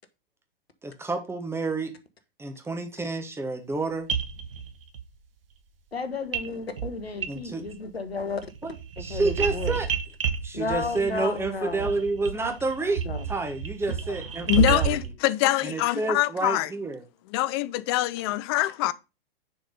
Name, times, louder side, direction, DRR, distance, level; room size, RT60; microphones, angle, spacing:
voice 1, 0.8-1.9 2.4-4.1 7.3-7.6 8.6-8.7 9.0-9.9 10.4-13.0 13.3-14.9 15.6-17.0, right 3 dB, 10° right, 1.3 m, -29 dB
sound 1, 3.7-3.8 4.1-5.0 6.3-6.5 6.8-7.8 8.1-15.1, right 7 dB, 65° right, 1.0 m, -31 dB
voice 2, 5.9-8.4 9.0-9.8 10.5-11.9 13.0-13.2, left 4 dB, 80° left, 1.2 m, -33 dB
voice 3, 14.5-16.7 17.3-18.9, left 16 dB, 25° left, 0.4 m, -24 dB
6.7 x 4.0 x 5.1 m
figure-of-eight pair, 100°, 30 cm